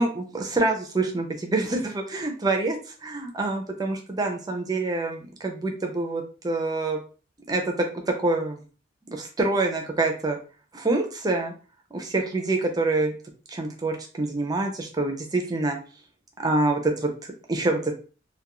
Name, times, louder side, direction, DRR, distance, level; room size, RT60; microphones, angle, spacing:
voice 1, 0.0-7.0 7.5-8.6 9.1-10.4 10.7-11.5 11.9-13.1 13.5-15.8 16.4-17.9, right 2 dB, 20° right, 3 dB, 0.4 m, -26 dB
2.3 x 2.2 x 2.9 m, 0.38 s
head